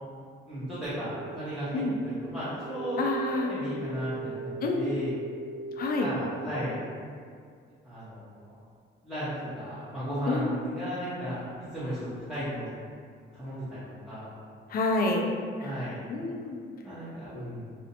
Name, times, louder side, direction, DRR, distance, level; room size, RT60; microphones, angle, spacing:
voice 1, 0.5-3.0 3.5-5.2 6.0-6.7 7.8-8.5 9.0-12.7 13.3-13.8 14.0-14.4 15.6-16.0 16.8-17.7, equal, 5° right, -14 dB, 0.7 m, -35 dB
sound 1, 1.1-6.6, right 3 dB, 35° right, 0.5 m, -39 dB
voice 2, 3.0-3.5 4.6-5.0 5.8-6.1 10.3-10.6 14.7-15.2 15.6-15.7 16.1-16.6 17.3-17.5, left 3 dB, 50° left, 1 dB, 0.4 m, -28 dB
2.5 x 2.1 x 2.8 m, 2.2 s
cardioid pair, 90°, 20 cm